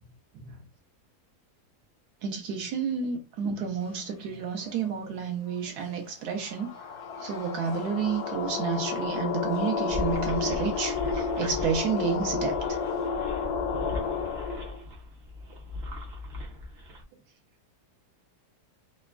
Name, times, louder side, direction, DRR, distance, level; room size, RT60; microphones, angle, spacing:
voice 1, 2.2-6.7 7.2-12.8, right 6 dB, 80° right, 1.2 m, -30 dB
sound 1, 3.8-13.1, left 2 dB, 50° left, 0.4 m, -51 dB
sound 2, 6.4-14.8, left 6 dB, 75° left, 1.1 m, -31 dB
sound 3, 9.9-17.0, left 1 dB, 50° right, 0.8 m, -38 dB
3.4 x 2.1 x 2.3 m
omnidirectional pair, 1.7 m